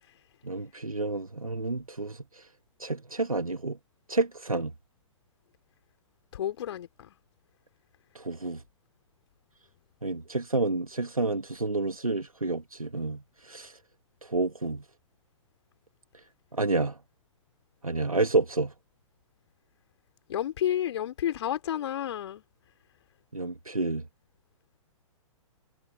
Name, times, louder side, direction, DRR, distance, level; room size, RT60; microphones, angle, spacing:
voice 1, 0.4-2.4 2.8-3.8 4.1-4.7 8.1-8.6 10.0-13.7 14.2-14.8 16.5-16.9 17.8-18.7 23.3-24.0, right 3 dB, 85° right, 1.9 m, -29 dB
voice 2, 6.3-7.1 20.3-22.4, left 11 dB, 55° left, 3.8 m, -31 dB
figure-of-eight pair, 115°, 18 cm